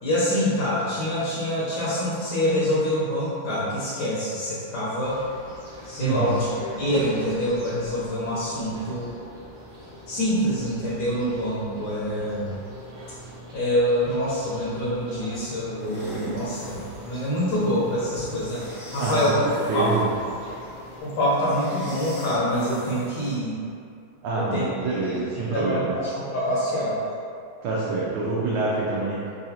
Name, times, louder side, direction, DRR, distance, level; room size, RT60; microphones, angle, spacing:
voice 1, 0.0-5.2 5.8-9.1 10.1-12.5 13.5-19.4 19.7-19.9 21.0-23.6 24.3-25.2 25.5-27.0, equal, 70° left, -9 dB, 1.4 m, -26 dB
sound 1, 5.0-21.0, equal, 55° right, 0.9 m, -41 dB
voice 2, 6.0-6.4 19.0-20.1 24.2-25.9 27.6-29.3, right 3 dB, 75° right, -7 dB, 1.2 m, -26 dB
sound 2, 15.8-23.4, equal, 50° left, 0.6 m, -42 dB
3.9 x 2.5 x 2.7 m, 2.5 s
omnidirectional pair, 2.2 m